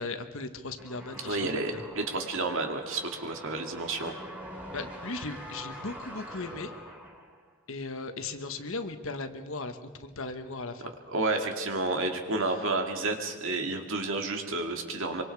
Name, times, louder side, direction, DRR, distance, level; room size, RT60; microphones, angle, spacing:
voice 1, 0.0-1.8 3.5-3.6 4.7-6.7 7.7-10.9, left 3 dB, 65° left, 8 dB, 1.4 m, -37 dB
sound 1, 0.8-7.5, equal, 5° right, 3.8 m, -44 dB
voice 2, 1.2-4.1 11.1-15.2, right 2 dB, 60° right, 4 dB, 2.4 m, -30 dB
25.0 x 24.5 x 4.8 m, 1.5 s
head